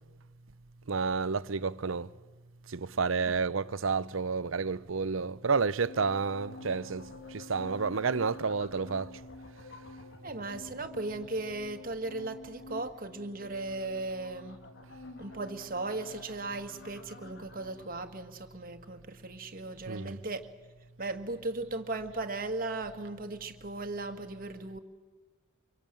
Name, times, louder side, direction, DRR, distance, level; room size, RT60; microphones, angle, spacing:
voice 1, 0.9-2.1 2.7-7.1 7.3-9.1 19.9-20.2, right 5 dB, 80° right, 0.7 m, -30 dB
sound 1, 5.8-18.0, left 2 dB, 60° left, 2.2 m, -49 dB
voice 2, 10.2-14.6 15.2-20.5 21.0-24.8, right 2 dB, 45° right, 1.7 m, -37 dB
25.5 x 23.5 x 9.0 m
head